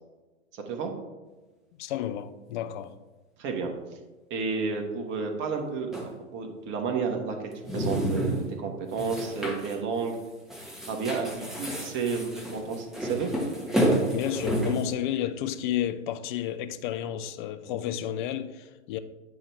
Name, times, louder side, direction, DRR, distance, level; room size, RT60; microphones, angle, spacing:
voice 1, 0.5-0.9 3.4-3.7 4.3-5.9 6.3-10.1 10.9-13.3, right 5 dB, 30° right, 1.2 m, -31 dB
voice 2, 1.8-3.0 14.1-19.0, left 11 dB, 40° left, 0.5 m, -31 dB
sound 1, 5.9-6.1 7.5-8.5 8.9-9.8 10.1-10.2 10.5-14.9, right 1 dB, ahead, 1.2 m, -30 dB
8.7 x 4.6 x 3.2 m
figure-of-eight pair, 100°, 37 cm